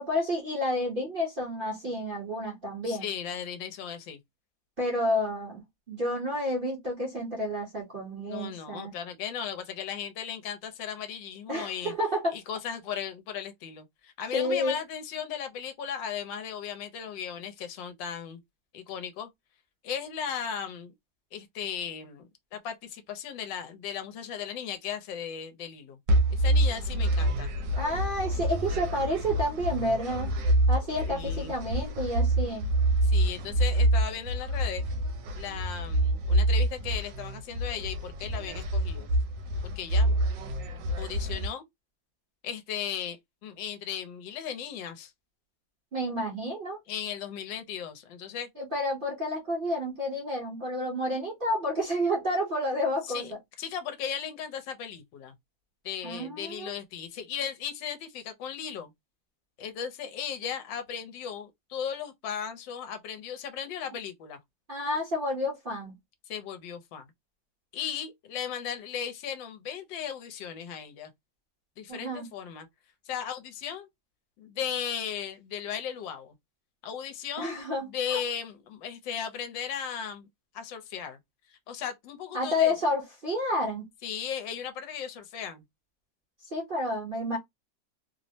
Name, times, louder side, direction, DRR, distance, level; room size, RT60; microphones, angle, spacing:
voice 1, 0.0-3.1 4.8-5.6 5.9-8.9 11.5-12.3 14.3-14.8 27.8-30.3 30.7-32.7 45.9-46.8 48.6-53.3 56.0-56.7 64.7-65.9 71.9-72.3 77.4-78.2 82.3-83.8 86.5-87.4, left 1 dB, 40° right, 0.8 m, -30 dB
voice 2, 2.8-4.2 8.2-11.9 12.3-18.4 18.7-19.3 19.8-20.9 21.3-22.2 22.5-26.0 26.3-27.5 31.1-31.5 33.0-34.8 35.3-39.1 39.6-40.2 40.9-41.6 42.4-43.2 43.4-45.1 46.9-48.5 53.0-53.3 53.6-55.3 55.8-58.9 59.6-64.4 66.3-67.1 67.7-71.1 71.8-72.7 73.1-73.9 74.4-76.3 76.8-77.6 77.9-80.3 80.5-81.2 81.5-82.7 84.0-85.6, left 8 dB, 80° left, 1.3 m, -36 dB
sound 1, 26.1-41.5, right 1 dB, 75° right, 1.2 m, -27 dB
3.2 x 2.0 x 2.6 m
omnidirectional pair, 2.1 m